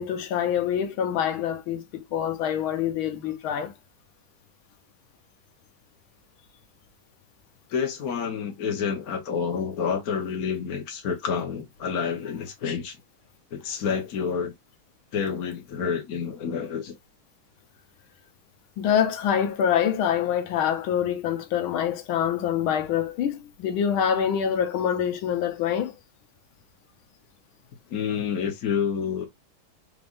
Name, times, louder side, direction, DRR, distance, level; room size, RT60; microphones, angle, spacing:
voice 1, 0.0-3.7 18.8-25.9, left 9 dB, 90° left, 1.7 m, -25 dB
voice 2, 7.7-13.0 13.5-14.5 15.1-16.9 27.9-29.3, left 6 dB, 55° left, 1.4 m, -28 dB
4.9 x 3.3 x 2.5 m
omnidirectional pair, 2.2 m